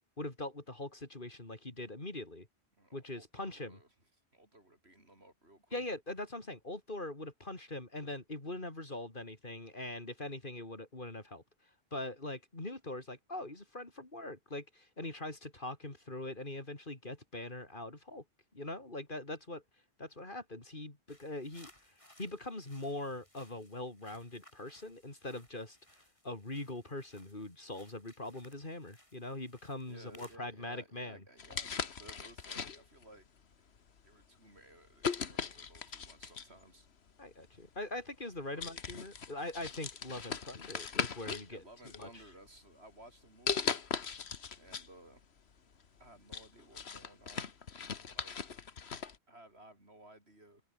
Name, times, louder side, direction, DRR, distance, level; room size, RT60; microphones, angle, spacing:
voice 1, 0.2-2.5 2.9-3.8 5.7-11.4 11.9-18.2 18.5-19.6 20.0-21.7 22.2-25.8 26.2-31.2 37.2-41.6 42.0-42.1, left 2 dB, 45° left, 3.9 m, -42 dB
voice 2, 2.8-3.9 4.3-5.8 29.9-33.3 34.0-36.9 38.5-38.7 39.7-39.9 41.5-43.8 44.6-45.2 46.0-47.5 48.0-48.4 49.3-50.6, right 1 dB, 65° right, 7.6 m, -57 dB
sound 1, 21.1-30.4, left 1 dB, 25° left, 6.2 m, -63 dB
sound 2, 31.4-33.0 33.8-34.0 35.0-36.6 37.7-37.8 38.2-38.4 38.6-41.5 41.9-42.6 43.5-44.9 45.2-45.3 45.8-49.2, left 6 dB, 65° left, 1.6 m, -39 dB
omnidirectional pair, 1.2 m